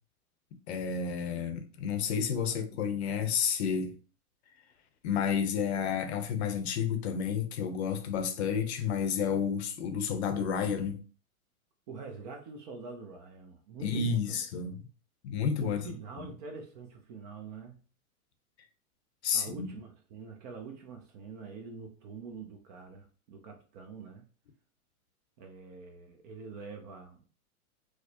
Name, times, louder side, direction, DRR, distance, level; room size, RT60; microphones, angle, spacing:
voice 1, 0.7-3.9 5.0-11.0 13.8-14.9 15.2-15.8 19.2-19.7, left 7 dB, 50° left, 0.7 m, -31 dB
voice 2, 11.9-14.4 15.6-17.8 19.3-24.3 25.4-27.3, right 4 dB, 30° right, 0.5 m, -45 dB
4.7 x 2.0 x 2.8 m
hypercardioid pair, 140°, 43 cm